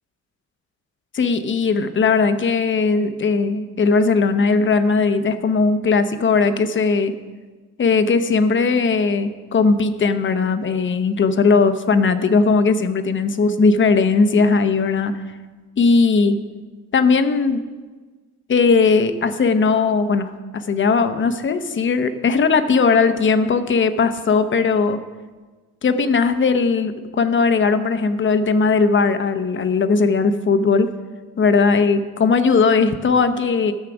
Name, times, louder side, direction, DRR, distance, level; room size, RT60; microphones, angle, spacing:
voice 1, 1.1-7.1 7.8-15.1 15.8-16.4 16.9-17.6 18.5-25.0 25.8-30.9 31.4-33.7, left 4 dB, 40° left, 10 dB, 0.8 m, -18 dB
12.0 x 6.6 x 6.1 m, 1.3 s
cardioid pair, 90°, 30 cm